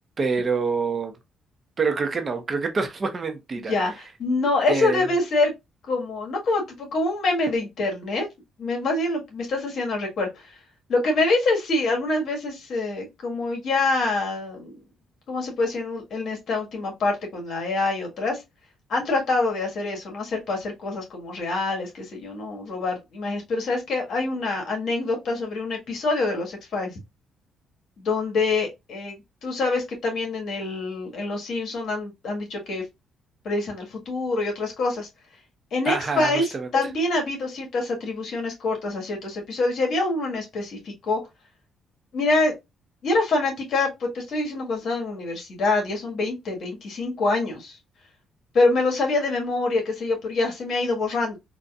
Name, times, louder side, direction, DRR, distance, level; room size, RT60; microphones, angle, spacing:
voice 1, 0.2-1.1 1.8-3.7 4.7-5.1 35.8-36.7, right 4 dB, 35° right, 0.8 m, -26 dB
voice 2, 3.6-5.5 5.9-8.2 8.6-10.5 10.9-14.8 15.3-18.4 18.9-27.0 28.0-32.8 33.4-35.1 35.7-41.2 42.1-42.5 43.0-47.8 48.5-51.4, left 2 dB, 65° left, 1.6 m, -25 dB
4.0 x 2.4 x 2.4 m
cardioid pair, 90°, 0 cm